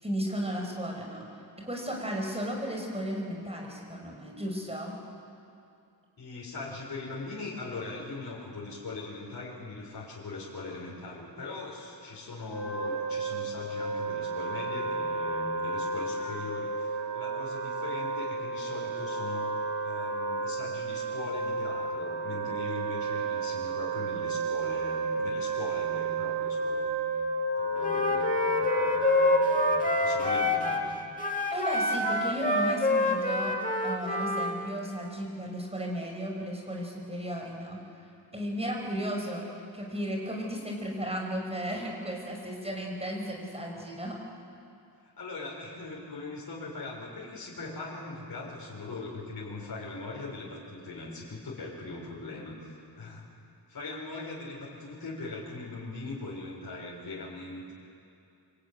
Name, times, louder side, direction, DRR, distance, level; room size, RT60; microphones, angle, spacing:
voice 1, 0.0-1.3 1.6-5.0 31.5-33.6 33.8-37.8 38.3-39.4 39.7-44.2, equal, 15° right, -1 dB, 5.2 m, -34 dB
voice 2, 6.2-19.5 19.8-31.2 45.0-53.3 53.7-57.7, left 3 dB, 60° left, -4 dB, 4.8 m, -40 dB
Wind instrument woodwind instrument, 12.4-30.5, right 2 dB, 65° right, 7.9 m, -31 dB
Wind instrument woodwind instrument 2, 27.8-30.9 31.2-34.6, left 1 dB, 20° left, 2.2 m, -27 dB
25.0 x 24.5 x 9.5 m, 2.5 s
wide cardioid pair, 160°, 40 cm